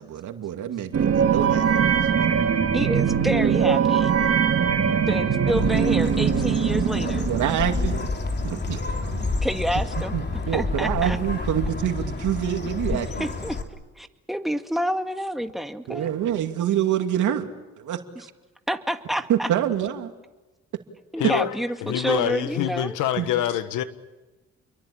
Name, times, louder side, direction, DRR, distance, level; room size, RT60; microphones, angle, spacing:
voice 1, 0.0-2.0 7.3-8.0 8.4-9.2 10.1-13.3 15.9-17.5 17.8-18.0 19.3-20.1 23.2-23.3, right 10 dB, 75° right, 2.5 m, -26 dB
sound 1, 0.9-8.1, right 7 dB, 50° right, 2.4 m, -22 dB
voice 2, 2.7-4.1 5.0-7.3 9.2-10.1 10.5-11.2 12.9-13.6 14.0-16.1 18.2-18.3 18.7-19.5 21.1-22.9, equal, ahead, 2.0 m, -28 dB
Bird, 5.5-13.6, left 3 dB, 35° left, 3.3 m, -29 dB
voice 3, 21.2-21.6 21.8-23.8, left 11 dB, 90° left, 1.5 m, -25 dB
29.5 x 23.0 x 8.7 m
cardioid pair, 90°, 30 cm